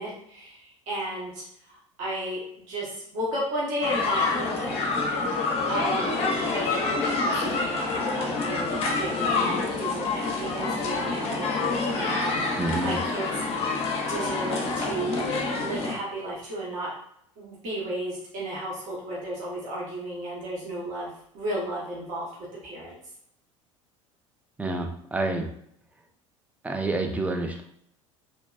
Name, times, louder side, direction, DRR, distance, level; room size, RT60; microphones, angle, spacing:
voice 1, 0.0-4.8 5.3-6.2 6.5-13.3 13.6-15.3 15.6-16.9 17.4-23.0, right 1 dB, 50° right, -6 dB, 1.2 m, -34 dB
sound 1, 3.8-15.9, left 3 dB, 35° left, 0.6 m, -27 dB
voice 2, 12.6-13.0 24.6-25.5 26.6-27.6, right 2 dB, 10° right, 3 dB, 0.4 m, -28 dB
2.9 x 2.5 x 2.3 m, 0.68 s
figure-of-eight pair, 70°, 17 cm